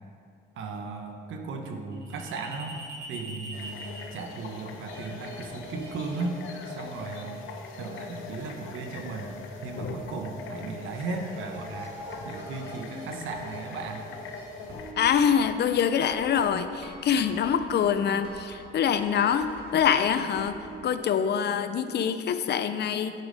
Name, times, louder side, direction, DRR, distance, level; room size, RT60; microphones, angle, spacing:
voice 1, 0.5-2.8 3.1-7.4 7.8-9.3 9.6-12.0 12.2-14.0, right 3 dB, 80° right, 4 dB, 1.0 m, -36 dB
sound 1, 1.9-20.9, equal, 60° right, 1.7 m, -45 dB
sound 2, 3.5-14.9, left 5 dB, 85° left, 0.8 m, -42 dB
voice 2, 15.0-23.1, left 8 dB, 60° left, 11 dB, 0.5 m, -25 dB
10.5 x 5.0 x 5.1 m, 2.4 s
cardioid pair, 90°, 20 cm